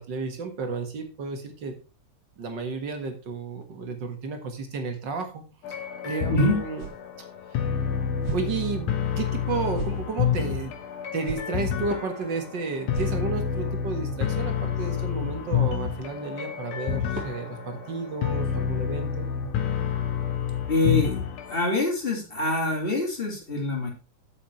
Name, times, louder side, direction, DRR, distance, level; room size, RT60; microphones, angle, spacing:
voice 1, 0.0-1.8 2.4-6.8 8.3-10.7 11.1-19.3, right 4 dB, 45° right, 6 dB, 1.8 m, -32 dB
sound 1, 5.6-21.6, left 8 dB, 75° left, 2.6 m, -28 dB
sound 2, 6.8-7.1 7.5-7.6 8.2-8.5 9.0-9.1 9.7-10.0 10.6-10.7 11.2-11.5 11.9-12.0 12.3-12.4 12.9-13.5, right 10 dB, 65° right, 2.0 m, -36 dB
sound 3, 11.9-14.4 16.6-16.7 17.1-19.9 20.2-21.0 21.3-21.5 21.8-21.9 22.5-22.8, right 2 dB, 25° right, 2.8 m, -46 dB
voice 2, 20.7-23.9, left 2 dB, 20° left, 1 dB, 2.7 m, -25 dB
8.3 x 7.7 x 4.7 m, 0.33 s
omnidirectional pair, 3.6 m